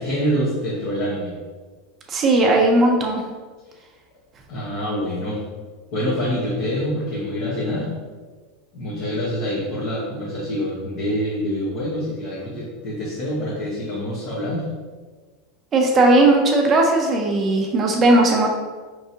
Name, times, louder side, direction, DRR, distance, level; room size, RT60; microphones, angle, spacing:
voice 1, 0.0-1.3 4.5-5.4 5.9-7.9 8.7-14.7, equal, 55° left, -8 dB, 1.4 m, -26 dB
voice 2, 2.1-3.2 15.7-18.5, right 2 dB, 30° right, 1 dB, 0.6 m, -17 dB
4.6 x 3.5 x 2.8 m, 1.4 s
supercardioid pair, 125°, 0 cm